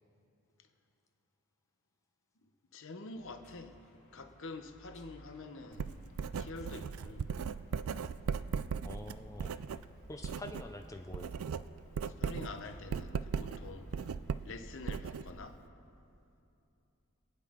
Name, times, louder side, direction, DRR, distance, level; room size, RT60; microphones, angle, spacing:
voice 1, 2.4-3.7 4.1-6.0 6.3-7.3 12.2-13.9 14.4-15.6, left 3 dB, 55° left, 7 dB, 0.9 m, -46 dB
sound 1, 3.1-14.8, equal, 30° left, 2.5 m, -60 dB
Writing, 5.7-10.7 11.0-15.6, right 6 dB, 70° right, 0.4 m, -38 dB
voice 2, 8.8-9.5 10.1-11.3, left 1 dB, 15° left, 5 dB, 0.5 m, -46 dB
27.0 x 9.2 x 3.7 m, 2.8 s
head